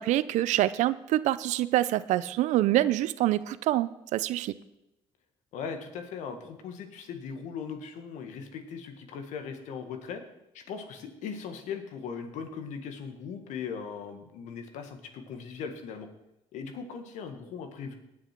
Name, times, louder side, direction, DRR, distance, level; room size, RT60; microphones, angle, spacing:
voice 1, 0.0-4.5, right 14 dB, 70° right, 17 dB, 0.5 m, -26 dB
voice 2, 5.5-10.2 10.5-16.1 16.5-17.9, left 6 dB, 75° left, 7 dB, 1.7 m, -39 dB
18.5 x 6.5 x 4.5 m, 0.91 s
supercardioid pair, 70°, 13 cm